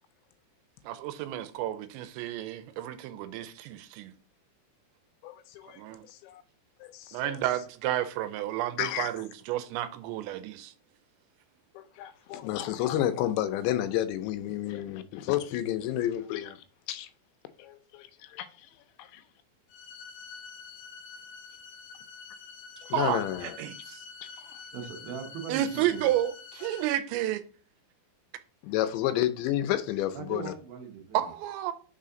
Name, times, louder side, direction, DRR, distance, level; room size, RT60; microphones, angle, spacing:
voice 1, 0.9-4.1 5.8-6.1 7.1-10.7 22.9-24.0 25.5-27.4 31.1-31.7, right 13 dB, 85° right, 2.9 m, -31 dB
voice 2, 5.2-6.4 6.8-7.4 8.8-9.1 11.8-17.1 17.6-18.5 19.0-19.2 22.9-23.6 24.4-24.5 28.6-30.5, left 12 dB, 85° left, 2.8 m, -31 dB
sound 1, 19.7-26.8, left 5 dB, 70° left, 2.6 m, -47 dB
voice 3, 24.7-26.1 30.1-31.3, right 7 dB, 70° right, 2.5 m, -40 dB
6.2 x 4.2 x 3.7 m
omnidirectional pair, 5.1 m